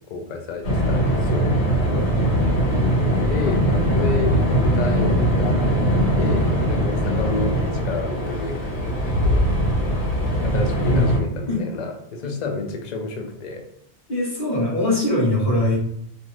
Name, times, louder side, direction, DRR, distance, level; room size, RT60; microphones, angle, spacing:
voice 1, 0.0-1.9 3.3-9.0 9.2-9.4 10.4-13.7, left 3 dB, 55° left, 4 dB, 0.5 m, -30 dB
sound 1, 0.6-11.2, equal, 80° left, 1.2 m, -21 dB
voice 2, 1.9-2.3 10.9-11.0 11.3-11.6 12.2-12.3 14.1-15.7, left 1 dB, 35° left, -11 dB, 1.0 m, -22 dB
2.6 x 2.4 x 3.1 m, 0.72 s
omnidirectional pair, 1.2 m